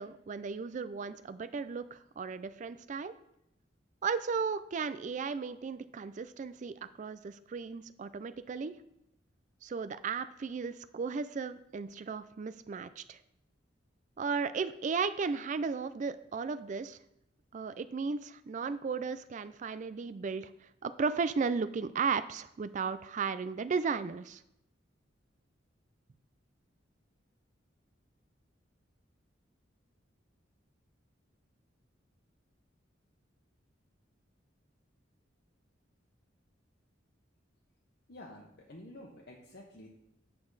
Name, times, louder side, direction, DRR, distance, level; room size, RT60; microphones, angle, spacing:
voice 1, 0.0-3.1 4.0-8.7 9.6-13.2 14.2-17.0 17.5-24.4, right 5 dB, 40° right, 13 dB, 0.3 m, -35 dB
voice 2, 38.1-39.9, left 1 dB, 60° left, -2 dB, 1.1 m, -50 dB
8.4 x 6.8 x 4.0 m, 0.81 s
head